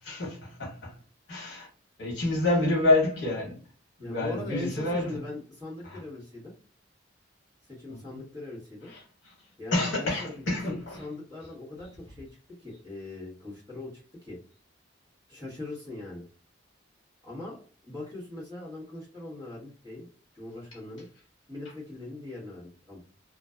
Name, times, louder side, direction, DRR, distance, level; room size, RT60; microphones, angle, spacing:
voice 1, 0.0-1.0 1.3-1.7 2.0-3.6 4.0-5.2 5.8-6.0 7.9-8.2 8.9-9.0 9.7-11.1, left 2 dB, 60° left, 1.1 m, -28 dB
voice 2, 4.0-6.5 7.7-8.9 9.6-12.3 12.6-14.4 15.3-16.2 17.2-20.1 20.3-21.1 21.5-23.0, left 2 dB, 20° right, 1.1 m, -40 dB
2.5 x 2.2 x 2.3 m
head